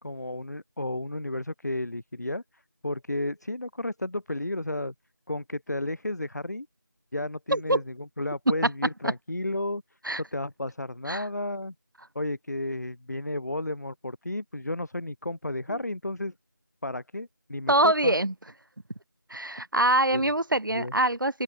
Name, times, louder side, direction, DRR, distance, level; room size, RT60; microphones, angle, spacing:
voice 1, 0.0-2.4 2.8-4.9 5.3-6.7 7.1-9.8 10.2-11.7 12.2-16.3 16.8-18.2 20.1-20.3 20.7-20.9, left 1 dB, 60° left, 2.0 m, -32 dB
voice 2, 7.5-7.8 9.0-9.1 10.0-10.2 11.1-11.2 17.7-18.3 19.3-21.4, right 1 dB, 85° right, 1.2 m, -24 dB
open air
figure-of-eight pair, 175°, 10 cm